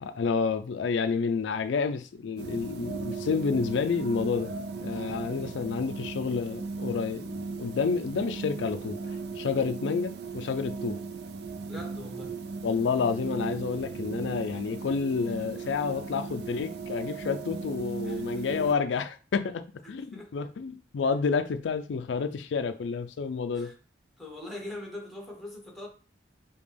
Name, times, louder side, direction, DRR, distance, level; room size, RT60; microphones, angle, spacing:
voice 1, 0.0-4.5 4.8-9.0 9.4-11.0 12.6-23.7, left 5 dB, 85° left, 0.4 m, -29 dB
sound 1, 2.4-18.7, right 4 dB, 60° right, 0.4 m, -37 dB
voice 2, 11.7-12.4 18.0-18.7 19.9-20.5 23.5-23.7 24.2-25.9, left 1 dB, ahead, 1.0 m, -42 dB
5.1 x 2.3 x 3.3 m
head